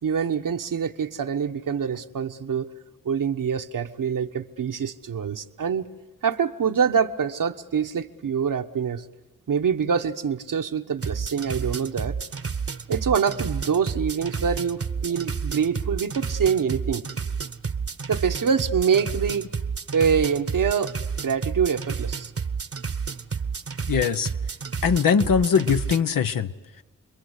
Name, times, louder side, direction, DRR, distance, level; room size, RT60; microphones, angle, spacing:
voice 1, 0.0-2.7 3.0-5.9 6.2-9.0 9.5-12.2 12.9-17.0 18.1-19.5 19.9-20.9 21.2-22.3, right 7 dB, 70° right, 7 dB, 1.3 m, -25 dB
sound 1, 11.0-26.0, right 5 dB, 40° right, 1.1 m, -30 dB
voice 2, 23.9-24.3 24.8-26.8, left 7 dB, 75° left, 9 dB, 1.1 m, -22 dB
30.0 x 22.0 x 8.3 m, 1.2 s
cardioid pair, 45°, 34 cm